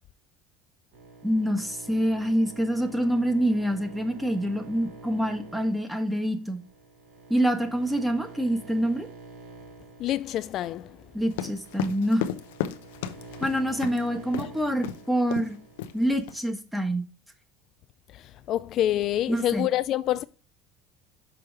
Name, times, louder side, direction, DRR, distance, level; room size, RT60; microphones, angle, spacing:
sound 1, 0.9-16.1, right 3 dB, 70° right, 4.2 m, -47 dB
voice 1, 1.2-6.6 7.3-9.1 11.1-12.3 13.4-15.6 15.9-17.0 19.3-19.7, equal, 5° right, 1.4 m, -26 dB
voice 2, 10.0-11.0 14.4-14.5 18.1-20.2, left 13 dB, 50° left, 0.3 m, -27 dB
sound 2, 11.3-14.0 14.3-14.5 14.8-15.0 15.3-15.5 15.8-16.4, left 10 dB, 85° left, 0.7 m, -33 dB
6.1 x 4.6 x 4.6 m
supercardioid pair, 105°, 0 cm